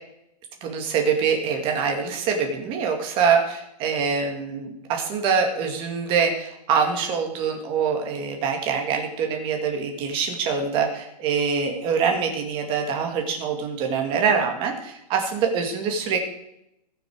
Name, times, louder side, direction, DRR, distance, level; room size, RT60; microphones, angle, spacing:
voice 1, 0.6-16.2, right 6 dB, 25° right, 3 dB, 2.2 m, -24 dB
20.5 x 6.8 x 4.7 m, 0.79 s
hypercardioid pair, 165°, 21 cm